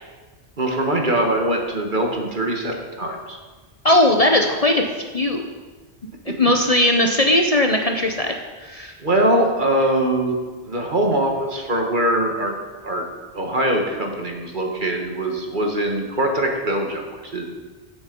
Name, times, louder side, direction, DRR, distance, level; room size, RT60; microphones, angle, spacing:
voice 1, 0.6-3.4 6.3-6.4 9.0-10.4 10.6-12.6 12.8-13.0 13.3-17.4, right 1 dB, 45° right, 2 dB, 1.8 m, -22 dB
voice 2, 3.8-4.8 5.1-5.5 6.3-8.9, left 1 dB, 35° left, 3 dB, 0.8 m, -18 dB
15.0 x 7.3 x 5.3 m, 1.3 s
omnidirectional pair, 1.1 m